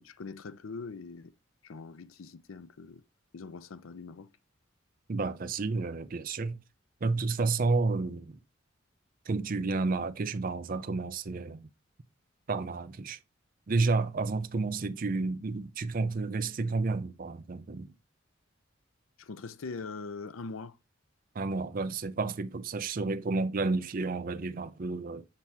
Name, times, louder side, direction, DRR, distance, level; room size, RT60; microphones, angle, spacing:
voice 1, 0.0-1.3 1.6-3.0 3.3-4.3 19.2-20.8, left 4 dB, 85° left, 0.5 m, -42 dB
voice 2, 5.1-6.6 7.0-8.4 9.3-11.7 12.5-13.2 13.7-17.9 21.3-25.3, right 3 dB, 45° right, 0.5 m, -31 dB
7.4 x 2.8 x 4.6 m
head